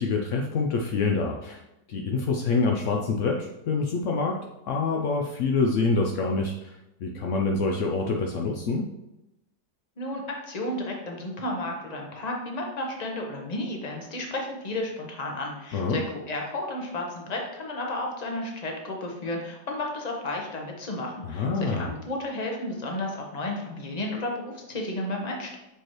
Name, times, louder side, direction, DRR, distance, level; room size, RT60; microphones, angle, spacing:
voice 1, 0.0-1.6 1.9-8.9 15.7-16.0 21.2-21.9, left 4 dB, 80° left, 1 dB, 0.6 m, -26 dB
voice 2, 10.0-25.6, left 1 dB, 30° left, 1 dB, 0.9 m, -32 dB
6.9 x 4.7 x 3.1 m, 0.93 s
omnidirectional pair, 1.9 m